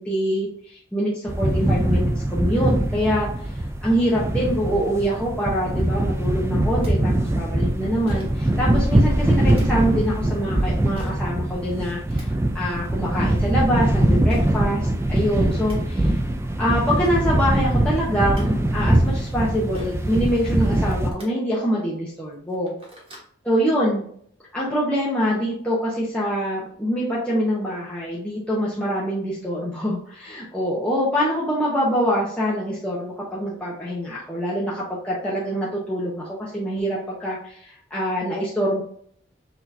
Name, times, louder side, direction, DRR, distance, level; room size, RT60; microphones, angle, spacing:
voice 1, 0.0-16.2 16.6-22.8 23.4-24.0 24.5-38.8, equal, 5° left, -8 dB, 0.8 m, -25 dB
sound 1, 1.3-21.1, right 1 dB, 15° right, 0.4 m, -22 dB
sound 2, 6.8-6.9 8.1-8.4 9.5-9.6 11.0-11.2 11.9-12.3 14.3-14.5 15.3-15.4 15.6-15.8 16.7-16.8 17.0-17.2 18.0-18.4 19.7-20.1 21.0-21.3 21.9-22.0 22.4-23.3, right 1 dB, 30° right, 1.4 m, -41 dB
6.0 x 2.9 x 2.7 m, 0.62 s
head